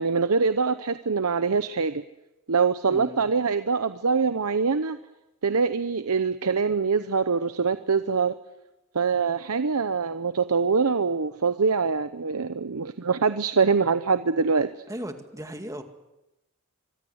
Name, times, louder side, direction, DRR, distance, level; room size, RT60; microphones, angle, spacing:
voice 1, 0.0-2.0 2.5-5.0 5.4-8.3 8.9-14.7, right 5 dB, 80° right, 11 dB, 0.9 m, -24 dB
voice 2, 2.9-3.2 14.9-15.8, equal, 15° right, 6 dB, 2.1 m, -36 dB
25.0 x 23.5 x 8.0 m, 0.98 s
head